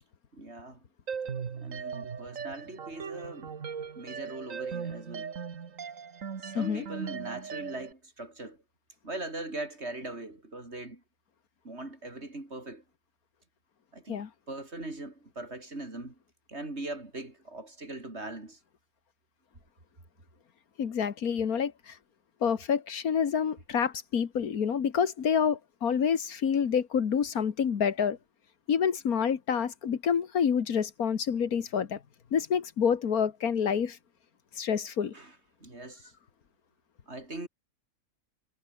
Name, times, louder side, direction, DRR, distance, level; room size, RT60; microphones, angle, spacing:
voice 1, 0.3-0.8 1.5-3.5 3.9-5.3 6.4-8.6 9.0-11.0 11.6-12.8 13.9-16.2 16.5-18.6 35.1-35.3 35.6-36.1 37.1-37.5, right 2 dB, 45° right, 5.1 m, -41 dB
sound 1, 1.1-7.9, right 6 dB, 60° right, 1.9 m, -38 dB
voice 2, 20.8-22.0 22.4-28.2 28.7-32.0 32.3-34.0 34.6-35.1, left 7 dB, 85° left, 1.9 m, -28 dB
omnidirectional pair, 1.5 m